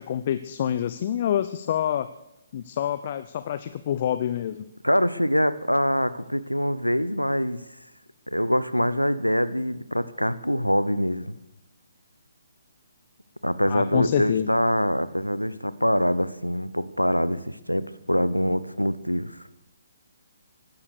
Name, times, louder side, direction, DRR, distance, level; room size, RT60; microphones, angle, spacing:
voice 1, 0.0-2.1 2.5-4.7 13.7-14.5, left 10 dB, 40° left, 13 dB, 0.7 m, -27 dB
voice 2, 4.8-7.6 8.3-11.4 13.4-19.4, equal, 90° left, 16 dB, 0.9 m, -24 dB
16.5 x 12.5 x 6.6 m, 0.91 s
figure-of-eight pair, 135°, 0 cm